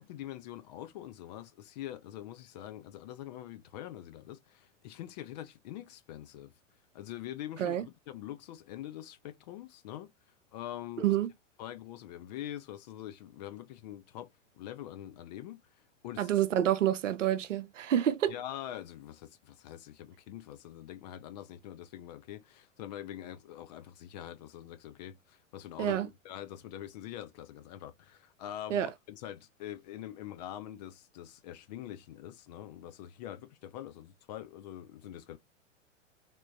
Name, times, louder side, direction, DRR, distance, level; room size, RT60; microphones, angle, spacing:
voice 1, 0.0-6.5 6.9-10.1 10.5-11.2 11.6-15.6 16.0-16.3 18.3-35.4, left 12 dB, 35° left, 0.4 m, -44 dB
voice 2, 11.0-11.3 16.2-18.3 25.8-26.1 28.7-28.9, right 11 dB, 70° right, 0.6 m, -28 dB
3.4 x 3.0 x 2.6 m
figure-of-eight pair, 95°, 39 cm